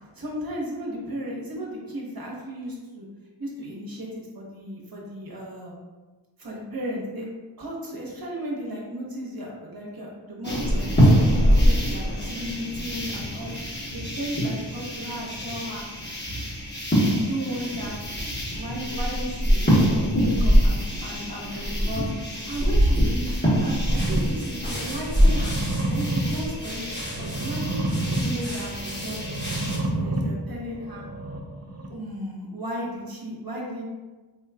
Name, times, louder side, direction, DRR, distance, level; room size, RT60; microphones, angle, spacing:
voice 1, 0.0-3.1 3.4-5.7 6.4-7.2 7.6-13.7 13.9-15.8 17.0-18.0 18.5-25.6 25.9-27.8 28.2-31.1 31.9-33.8, equal, 50° right, -3 dB, 1.0 m, -35 dB
sound 1, 10.4-29.8, equal, 25° left, 1.1 m, -24 dB
sound 2, 23.9-31.9, right 2 dB, 35° right, 0.5 m, -30 dB
4.1 x 3.1 x 2.3 m, 1.3 s
wide cardioid pair, 65°, 45 cm